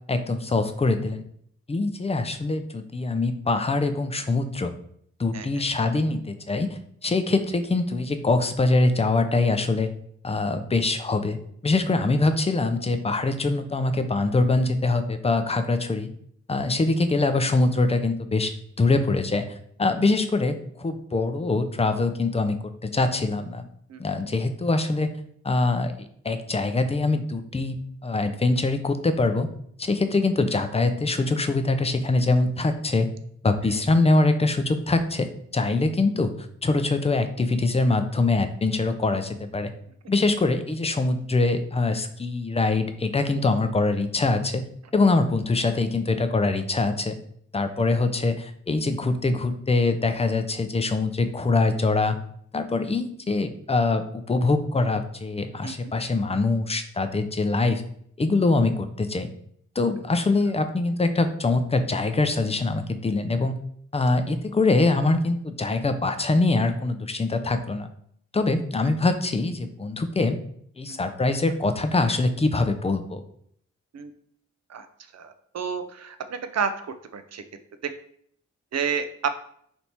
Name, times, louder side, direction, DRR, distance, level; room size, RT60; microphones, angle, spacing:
voice 1, 0.1-1.2 1.7-4.7 5.2-6.7 7.0-9.9 10.2-11.4 11.6-16.1 16.5-18.5 18.8-19.5 19.8-23.6 24.0-25.1 25.4-29.5 29.8-33.1 33.4-36.3 36.6-39.7 40.1-44.6 44.9-47.2 47.5-52.2 52.5-57.8 58.2-59.3 59.8-63.5 63.9-67.9 68.3-70.4 70.8-73.2, left 3 dB, 20° left, 9 dB, 0.5 m, -23 dB
voice 2, 75.1-76.7 77.1-77.4 77.8-77.9 78.7-79.3, right 6 dB, 55° right, 10 dB, 0.5 m, -29 dB
3.4 x 2.8 x 4.3 m, 0.65 s
cardioid pair, 55°, 31 cm